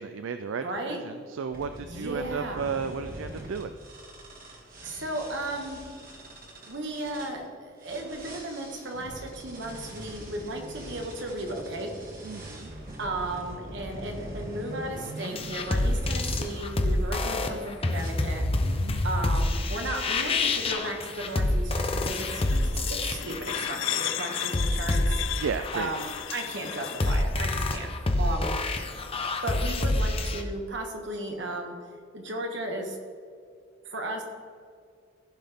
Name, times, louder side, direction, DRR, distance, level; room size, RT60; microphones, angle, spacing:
voice 1, 0.0-3.8 12.2-12.7 18.6-19.1 25.3-25.9 28.2-28.6, right 5 dB, 80° right, 9 dB, 0.4 m, -34 dB
voice 2, 0.6-1.0 1.8-2.7 4.8-5.8 6.7-11.9 13.0-18.4 19.0-25.2 25.7-27.9 28.2-28.6 29.4-31.7 32.1-33.0 33.8-34.2, right 1 dB, 65° right, 2 dB, 1.5 m, -35 dB
sound 1, 1.5-7.3 7.8-16.6 17.2-17.6 18.0-18.1, right 1 dB, 45° right, 1.7 m, -43 dB
sound 2, 15.2-30.4, left 2 dB, 30° left, 0.7 m, -27 dB
sound 3, 21.9-27.2, left 12 dB, 75° left, 0.4 m, -35 dB
15.0 x 5.7 x 3.6 m, 2.2 s
head